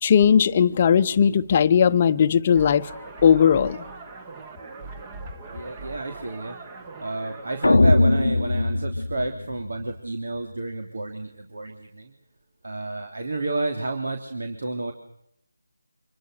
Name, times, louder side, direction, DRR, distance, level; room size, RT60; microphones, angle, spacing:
voice 1, 0.0-3.9, left 7 dB, 30° left, 1.0 m, -18 dB
sound 1, 2.5-7.8, right 4 dB, 20° right, 1.6 m, -40 dB
voice 2, 5.4-6.6 7.0-12.1 12.6-14.9, right 2 dB, 65° right, 3.3 m, -30 dB
sound 2, 7.6-9.9, left 2 dB, 75° left, 0.9 m, -20 dB
26.5 x 21.5 x 6.8 m
figure-of-eight pair, 165°, 0 cm